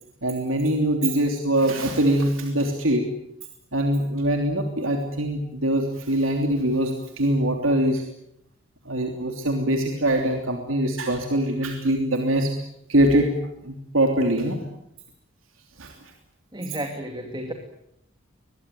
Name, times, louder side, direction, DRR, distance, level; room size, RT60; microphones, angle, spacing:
voice 1, 0.2-3.1 3.7-8.0 8.8-12.5 12.9-13.3 13.6-14.6 15.8-15.9, right 1 dB, 85° right, 3 dB, 3.1 m, -23 dB
voice 2, 16.5-17.5, right 1 dB, 20° right, 4 dB, 2.4 m, -32 dB
23.5 x 21.5 x 9.3 m, 0.76 s
head